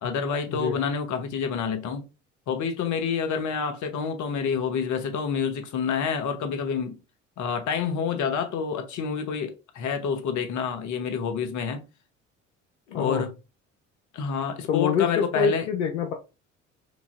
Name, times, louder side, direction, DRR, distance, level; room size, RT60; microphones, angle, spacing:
voice 1, 0.0-2.0 2.5-7.0 7.4-11.8 12.9-13.3 14.1-15.7, left 6 dB, 55° left, 1.0 m, -28 dB
voice 2, 12.9-13.2 14.7-16.1, left 6 dB, 85° left, 0.6 m, -25 dB
4.6 x 2.8 x 2.5 m
hypercardioid pair, 55°, 36 cm